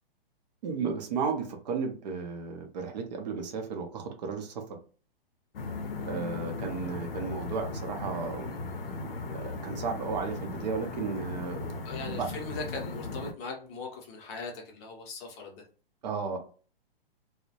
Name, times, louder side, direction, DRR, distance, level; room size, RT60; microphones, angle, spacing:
voice 1, 0.6-4.6 6.0-8.5 9.2-11.7 12.0-12.3 16.0-16.4, right 5 dB, 45° right, 4 dB, 0.6 m, -34 dB
sound 1, 5.5-13.3, left 3 dB, 70° left, 0.6 m, -37 dB
voice 2, 11.8-15.7, left 4 dB, 30° left, 0 dB, 0.6 m, -39 dB
2.2 x 2.0 x 2.7 m, 0.38 s
figure-of-eight pair, 120°, 29 cm